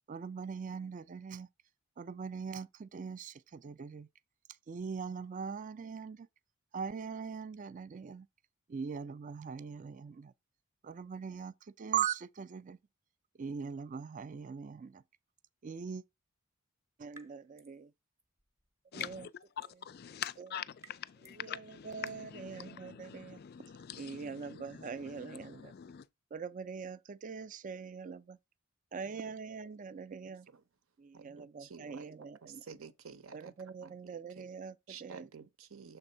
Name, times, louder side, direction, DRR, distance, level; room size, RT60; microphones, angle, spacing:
voice 1, 0.1-1.5 2.0-4.1 4.7-6.3 6.7-8.3 8.7-10.3 10.8-12.8 13.4-15.0 15.6-16.0 17.0-17.9 18.9-19.3 21.4-23.4 24.0-25.7 26.3-28.4 28.9-30.5 31.0-32.6 33.3-35.3, right 6 dB, 35° right, 0.3 m, -41 dB
sound 1, 17.1-17.8 18.2-21.5 22.0-22.3, right 2 dB, 15° right, 0.7 m, -58 dB
voice 2, 18.9-26.1, left 9 dB, 45° left, 0.3 m, -45 dB
voice 3, 29.0-29.3 30.3-30.6 31.1-33.5 33.8-34.5 34.9-36.0, right 5 dB, 65° right, 0.7 m, -52 dB
6.8 x 3.5 x 5.4 m
head